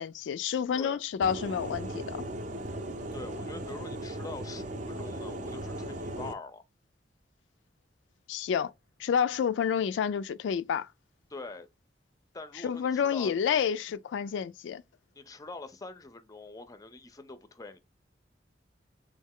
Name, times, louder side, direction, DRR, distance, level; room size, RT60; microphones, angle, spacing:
voice 1, 0.0-2.2 8.3-8.7 9.0-10.9 12.6-14.8, left 7 dB, 90° left, 0.3 m, -29 dB
sound 1, 1.2-6.3, right 1 dB, 45° right, 0.6 m, -37 dB
voice 2, 3.1-6.6 11.3-11.7 12.3-13.3 15.2-17.8, left 3 dB, 20° left, 0.5 m, -44 dB
3.6 x 3.2 x 3.6 m
head